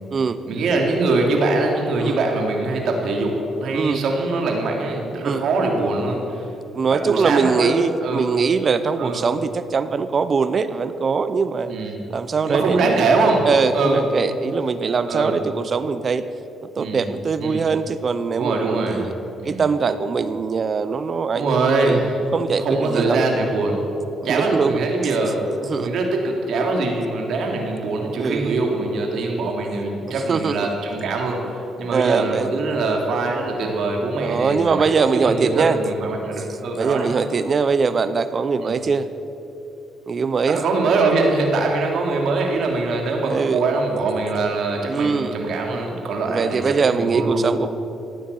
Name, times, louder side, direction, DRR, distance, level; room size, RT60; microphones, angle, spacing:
voice 1, 0.5-3.3 3.6-6.5 6.9-7.7 8.0-8.3 9.0-9.2 11.7-12.0 12.4-13.5 13.7-14.0 15.1-15.4 16.8-17.1 17.4-17.7 18.3-19.0 19.4-19.6 21.3-22.2 22.6-23.8 24.2-25.4 25.8-34.9 35.1-37.1 38.6-38.8 40.5-47.5, right 3 dB, 70° right, 1 dB, 3.1 m, -22 dB
voice 2, 3.7-4.0 5.2-5.4 6.7-11.7 12.1-13.1 13.4-16.2 16.6-19.1 19.4-21.6 21.8-23.2 24.3-24.8 25.7-25.9 28.2-28.6 30.1-30.7 31.9-32.5 34.2-35.8 36.8-39.1 40.1-40.6 43.2-43.6 44.9-45.3 46.3-47.7, right 5 dB, 45° right, 13 dB, 0.7 m, -22 dB
15.5 x 10.5 x 8.6 m, 2.9 s
cardioid pair, 90°, 0 cm